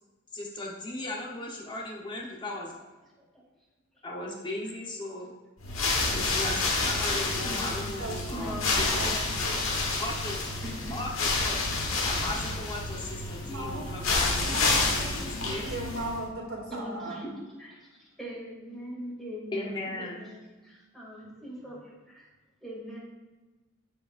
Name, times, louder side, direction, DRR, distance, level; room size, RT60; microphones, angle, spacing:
voice 1, 0.3-2.7 4.0-5.3 6.1-9.0 10.0-10.4 10.9-11.6 12.0-15.6 19.5-20.2, left 1 dB, 20° left, -2 dB, 1.0 m, -37 dB
sound 1, 5.6-16.3, left 3 dB, 70° left, 1.3 m, -29 dB
voice 2, 7.4-8.0 8.3-9.6 10.6-10.9 16.7-21.8 22.1-22.2 22.6-23.0, equal, ahead, -5 dB, 2.3 m, -41 dB
voice 3, 8.0-9.7 13.4-13.8 14.4-17.2, right 1 dB, 75° right, -3 dB, 2.2 m, -37 dB
15.0 x 5.1 x 2.5 m, 1.2 s
head